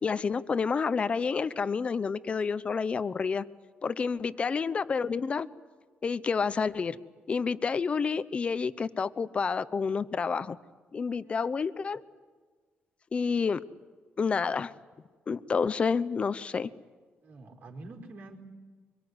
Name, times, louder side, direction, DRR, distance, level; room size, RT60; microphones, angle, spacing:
voice 1, 0.0-3.4 3.8-5.5 6.0-7.0 7.3-10.6 10.9-12.0 13.1-13.6 14.2-14.7 15.3-16.7, left 5 dB, 30° left, 15 dB, 0.8 m, -29 dB
voice 2, 17.2-18.4, right 2 dB, 50° right, 2 dB, 4.6 m, -47 dB
25.0 x 23.5 x 9.7 m, 1.4 s
cardioid pair, 155°, 4 cm